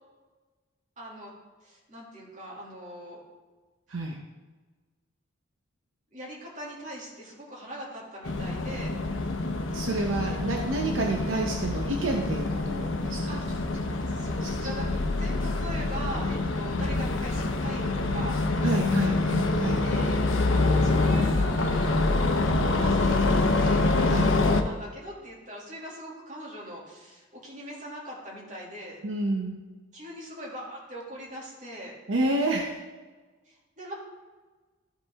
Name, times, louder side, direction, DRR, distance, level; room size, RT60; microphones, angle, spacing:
voice 1, 1.0-1.3 1.6-3.2 6.1-8.9 10.3-10.8 13.3-13.4 14.1-18.4 19.8-20.2 20.7-22.0 22.6-29.0 29.9-31.9 33.4-33.9, equal, 40° right, -4 dB, 2.6 m, -41 dB
sound 1, 8.2-24.6, left 2 dB, 75° left, 0.7 m, -26 dB
voice 2, 9.7-13.4 14.4-14.7 18.6-19.8 24.1-24.3 29.0-29.6 32.1-32.8, right 2 dB, 75° right, 1 dB, 0.9 m, -29 dB
sound 2, 12.2-14.9, left 1 dB, 45° left, 2.4 m, -47 dB
13.5 x 5.3 x 3.6 m, 1.3 s
head